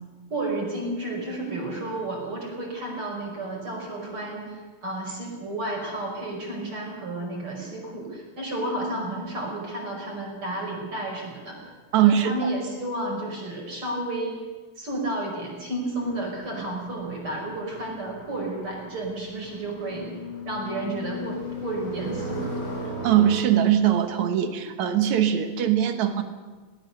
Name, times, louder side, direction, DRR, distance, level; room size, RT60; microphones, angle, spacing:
voice 1, 0.3-11.7 12.0-14.5 14.8-20.1 20.5-22.6, right 1 dB, 40° right, -1 dB, 6.0 m, -32 dB
voice 2, 11.9-12.3 23.0-26.2, right 10 dB, 65° right, 8 dB, 2.5 m, -21 dB
sound 1, 16.0-23.4, left 1 dB, 50° left, 5.6 m, -37 dB
21.0 x 19.0 x 6.8 m, 1.4 s
omnidirectional pair, 3.9 m